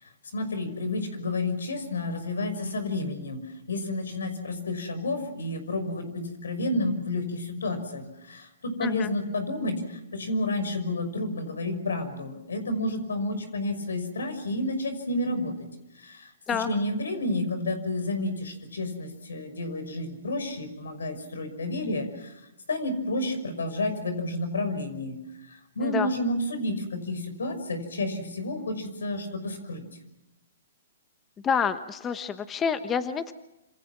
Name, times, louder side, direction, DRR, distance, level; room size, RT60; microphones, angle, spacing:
voice 1, 0.0-15.5 15.9-22.4 22.7-25.2 25.5-29.8, left 1 dB, 85° left, 10 dB, 6.0 m, -30 dB
voice 2, 8.8-9.1 16.5-16.7 25.8-26.1 31.4-33.3, left 6 dB, 20° left, 11 dB, 1.2 m, -28 dB
27.5 x 27.0 x 6.1 m, 0.91 s
hypercardioid pair, 140°, 0 cm